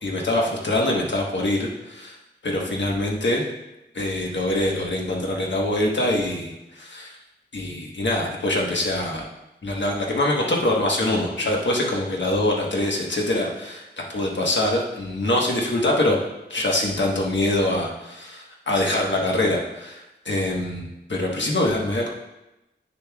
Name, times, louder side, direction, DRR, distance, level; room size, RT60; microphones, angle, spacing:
voice 1, 0.0-2.2 2.4-3.4 3.9-7.1 7.5-9.3 9.6-16.2 16.5-22.1, left 1 dB, 70° left, -1 dB, 1.3 m, -24 dB
9.1 x 7.1 x 2.3 m, 0.94 s
wide cardioid pair, 75°, 20 cm